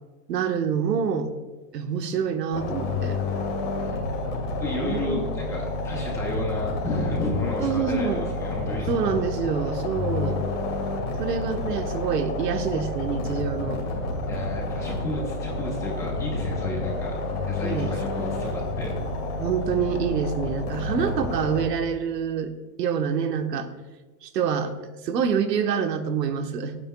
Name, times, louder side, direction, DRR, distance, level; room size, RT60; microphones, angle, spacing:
voice 1, 0.3-1.3 1.7-3.2 4.8-5.2 7.6-8.3 8.9-10.5 11.2-13.8 17.6-18.0 19.4-22.5 22.8-23.7 24.2-24.7 25.0-26.8, right 7 dB, 85° right, 7 dB, 1.3 m, -26 dB
sound 1, 2.5-21.7, left 2 dB, 30° left, 2.3 m, -29 dB
voice 2, 4.4-8.9 14.3-17.1 17.5-18.9, left 1 dB, 5° left, -2 dB, 0.9 m, -32 dB
24.5 x 9.0 x 2.3 m, 1.3 s
supercardioid pair, 175°, 48 cm